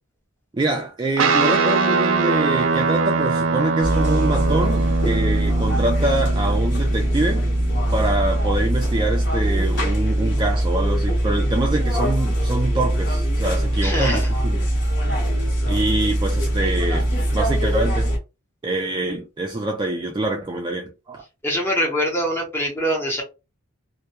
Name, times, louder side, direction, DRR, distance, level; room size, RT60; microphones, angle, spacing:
voice 1, 0.5-7.5 7.9-14.7 15.2-17.1 17.3-18.1 18.6-21.2, right 2 dB, 20° right, 0.3 m, -25 dB
Guitar, 1.2-9.9, right 4 dB, 75° right, 0.5 m, -24 dB
sound 1, 3.8-18.2, right 1 dB, 55° left, 1.0 m, -21 dB
voice 2, 13.8-14.3 21.4-23.2, equal, 10° left, 0.8 m, -23 dB
2.2 x 2.1 x 2.8 m
head